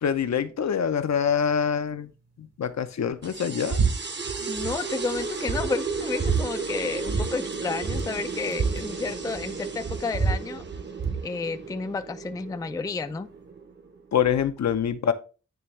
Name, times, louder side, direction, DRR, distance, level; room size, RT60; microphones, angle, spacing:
voice 1, 0.0-2.1 2.4-3.8 4.4-4.5 14.1-15.1, left 7 dB, 65° left, 0.6 m, -25 dB
sound 1, 3.2-14.3, right 4 dB, 35° right, 0.8 m, -34 dB
sound 2, 3.7-3.9 4.2-4.7 5.1-5.2 5.5-6.4 7.1-7.3 7.5-7.6 7.8-9.5 9.8-11.2, right 5 dB, 55° right, 1.2 m, -27 dB
voice 2, 4.5-10.6 11.2-13.3, left 4 dB, 15° left, 0.3 m, -31 dB
9.3 x 3.4 x 3.1 m
wide cardioid pair, 80°, 30 cm